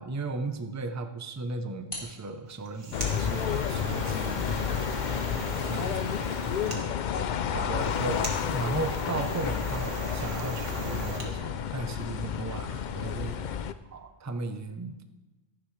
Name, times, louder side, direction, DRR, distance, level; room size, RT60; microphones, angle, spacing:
voice 1, 0.0-4.8 5.3-7.0 7.5-13.4 13.9-15.0, right 3 dB, 20° right, 7 dB, 0.5 m, -36 dB
sound 1, 1.8-3.0 3.7-11.3, left 1 dB, 25° left, 3.3 m, -51 dB
sound 2, 2.5-11.3, right 2 dB, 85° right, 2.0 m, -39 dB
sound 3, 2.9-13.7, left 8 dB, 60° left, 0.5 m, -31 dB
13.5 x 11.0 x 3.2 m, 1.1 s
omnidirectional pair, 1.2 m